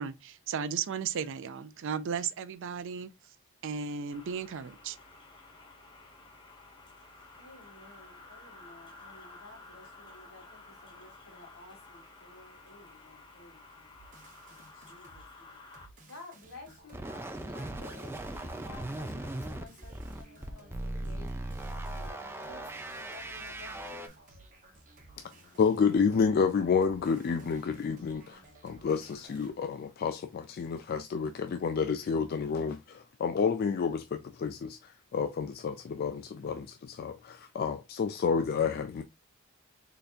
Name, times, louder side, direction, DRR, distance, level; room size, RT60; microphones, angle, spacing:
voice 1, 0.0-3.1 3.6-5.0, right 6 dB, 65° right, 0.4 m, -35 dB
sound 1, 4.1-15.9, left 3 dB, 25° left, 1.2 m, -53 dB
voice 2, 7.4-14.0 14.5-15.6 16.1-21.3 21.8-24.0, left 2 dB, 80° left, 2.0 m, -53 dB
sound 2, 14.0-15.2 15.7-29.5, right 2 dB, 40° right, 1.2 m, -56 dB
sound 3, 16.9-24.1, right 1 dB, 10° right, 0.5 m, -38 dB
voice 3, 25.6-39.0, left 5 dB, 45° left, 0.3 m, -30 dB
4.0 x 3.3 x 2.4 m
head